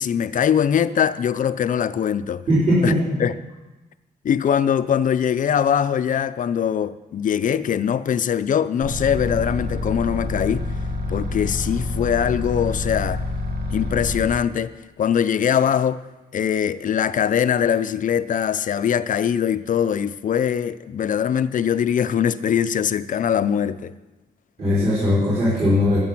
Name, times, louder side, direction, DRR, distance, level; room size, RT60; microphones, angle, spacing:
voice 1, 0.0-2.4 2.8-2.9 3.2-3.4 4.2-10.7 11.1-13.2 13.7-14.7 15.0-16.0 16.3-23.9, left 8 dB, 50° left, 0.5 m, -22 dB
voice 2, 2.5-3.2 24.6-26.0, left 1 dB, 40° right, 4.6 m, -19 dB
sound 1, 8.8-14.3, left 2 dB, 75° right, 1.7 m, -27 dB
12.0 x 8.3 x 6.0 m
cardioid pair, 120°, 17 cm